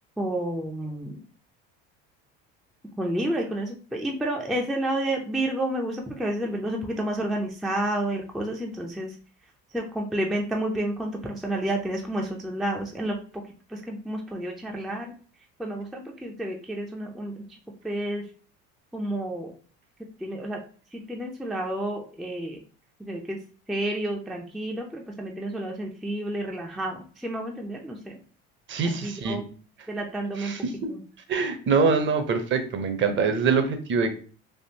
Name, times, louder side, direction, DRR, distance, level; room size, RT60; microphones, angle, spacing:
voice 1, 0.2-1.2 3.0-9.2 9.7-13.4 13.7-15.1 15.6-17.4 17.8-18.3 18.9-19.5 20.2-20.6 20.9-22.6 23.0-23.4 23.7-28.2 29.0-29.5 29.9-30.6 30.9-31.0, right 1 dB, ahead, 1 dB, 0.3 m, -30 dB
voice 2, 28.7-29.4 30.4-30.9 31.3-34.1, right 5 dB, 40° right, 8 dB, 0.6 m, -24 dB
3.5 x 2.4 x 2.7 m, 0.41 s
supercardioid pair, 100°, 31 cm